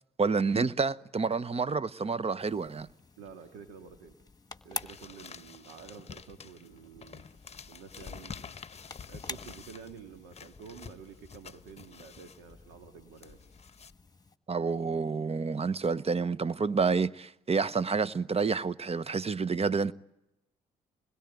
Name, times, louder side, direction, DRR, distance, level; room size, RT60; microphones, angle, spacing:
voice 1, 0.2-2.9 14.5-19.9, right 4 dB, 35° right, 1.0 m, -29 dB
sound 1, 2.4-14.4, left 3 dB, 20° left, 1.7 m, -48 dB
voice 2, 3.2-4.2 4.6-7.2 7.7-8.5 9.1-13.4, right 6 dB, 85° right, 1.9 m, -49 dB
sound 2, 4.7-13.9, left 6 dB, 35° left, 0.9 m, -48 dB
27.0 x 21.0 x 9.2 m
hypercardioid pair, 50°, 18 cm